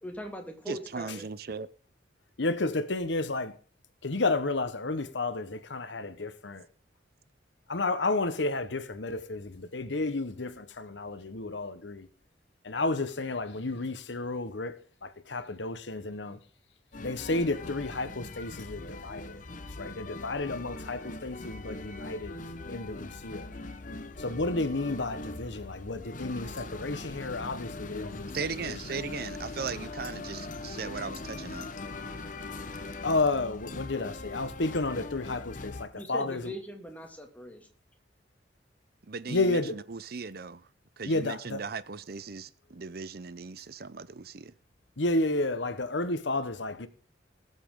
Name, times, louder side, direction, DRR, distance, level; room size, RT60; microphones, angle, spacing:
voice 1, 0.0-1.3 35.9-37.6, equal, 10° left, 2.4 m, -41 dB
voice 2, 0.7-1.7 28.3-31.7 39.1-40.7 41.0-44.5, right 5 dB, 55° right, 0.7 m, -38 dB
voice 3, 2.4-3.6 4.0-6.6 7.7-12.1 12.6-16.4 17.0-19.4 19.8-22.3 22.7-23.5 24.2-28.3 28.6-28.7 33.0-36.5 39.3-39.8 41.0-41.6 45.0-46.9, left 2 dB, 80° left, 1.2 m, -31 dB
sound 1, 16.9-35.9, left 2 dB, 45° left, 1.1 m, -41 dB
19.5 x 8.0 x 3.7 m
head